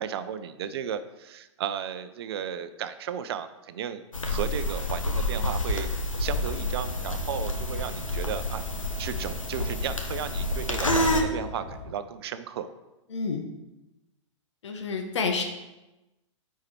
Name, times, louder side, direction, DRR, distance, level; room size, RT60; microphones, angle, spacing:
voice 1, 0.0-5.9 6.2-8.6 9.0-12.7, right 8 dB, 55° right, 11 dB, 0.6 m, -34 dB
sound 1, 4.1-11.2, left 1 dB, 90° left, 1.1 m, -29 dB
sound 2, 6.2-11.9, left 2 dB, 50° left, 2.7 m, -40 dB
voice 2, 13.1-13.4 14.6-15.4, left 4 dB, 65° left, 4 dB, 1.3 m, -29 dB
9.6 x 4.7 x 4.5 m, 1.0 s
figure-of-eight pair, 110°, 16 cm